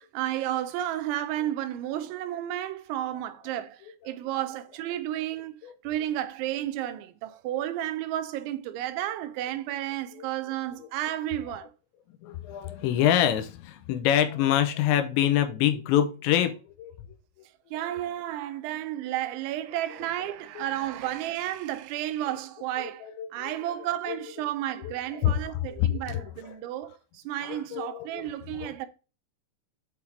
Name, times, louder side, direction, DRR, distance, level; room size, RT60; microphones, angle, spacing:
voice 1, 0.0-5.5 5.8-11.7 17.7-28.9, right 13 dB, 85° right, 3.1 m, -32 dB
voice 2, 12.2-16.9 20.6-20.7 23.0-23.6 24.1-24.2 24.8-24.9 25.2-26.5 27.5-28.3 28.6-28.9, left 11 dB, 85° left, 3.0 m, -26 dB
8.5 x 3.6 x 4.5 m
omnidirectional pair, 5.3 m